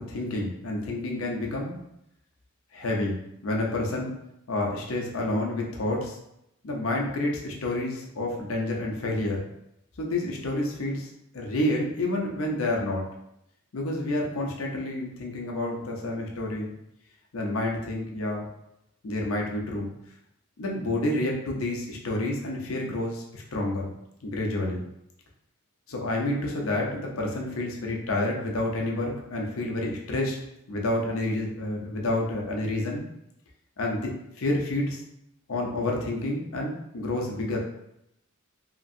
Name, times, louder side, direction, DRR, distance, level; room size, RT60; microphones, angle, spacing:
voice 1, 0.1-1.7 2.7-4.1 4.5-6.2 6.6-9.4 10.0-13.0 13.7-16.7 17.3-18.5 19.0-19.9 20.6-23.9 24.2-24.8 25.9-30.4 30.7-33.0 33.8-34.1 34.4-35.0 35.5-37.6, left 1 dB, 70° left, -1 dB, 0.6 m, -29 dB
2.9 x 2.5 x 2.6 m, 0.82 s
head